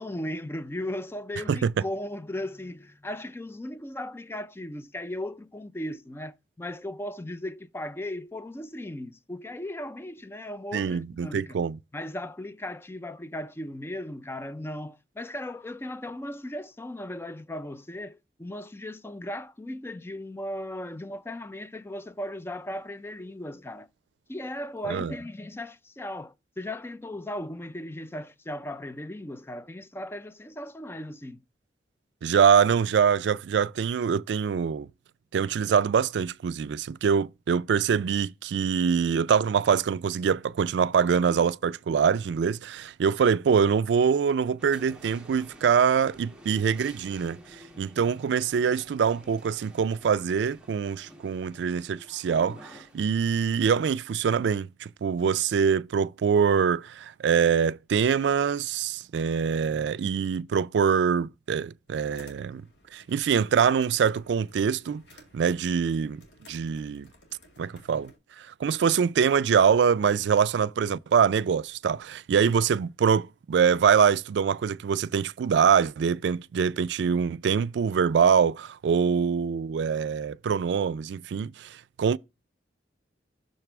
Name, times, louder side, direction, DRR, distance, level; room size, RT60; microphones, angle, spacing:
voice 1, 0.0-11.6 11.9-23.9 24.3-31.4, left 1 dB, 15° left, 0.4 m, -37 dB
voice 2, 10.7-11.8 24.9-25.1 32.2-34.9 35.3-62.6 62.9-65.0 65.3-66.2 66.5-67.1 67.6-68.1 68.4-82.2, right 7 dB, 75° right, 0.3 m, -24 dB
sound 1, 44.6-53.0, equal, 5° right, 1.1 m, -50 dB
sound 2, 61.9-68.2, left 1 dB, 85° left, 2.1 m, -57 dB
6.5 x 3.3 x 5.9 m
head